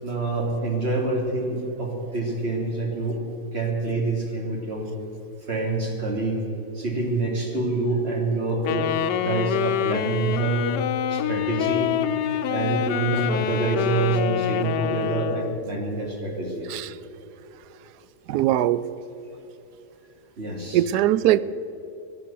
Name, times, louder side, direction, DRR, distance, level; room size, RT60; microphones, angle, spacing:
voice 1, 0.0-3.2 3.5-4.9 5.5-6.4 6.7-8.9 9.2-10.7 11.1-11.9 12.5-16.7 20.4-20.8, right 3 dB, 35° right, 0 dB, 2.8 m, -26 dB
Wind instrument woodwind instrument, 8.7-15.6, left 10 dB, 85° left, 1.2 m, -26 dB
voice 2, 18.3-18.8 20.7-21.4, right 13 dB, 75° right, 16 dB, 1.1 m, -20 dB
18.0 x 11.5 x 6.9 m, 3.0 s
omnidirectional pair, 1.8 m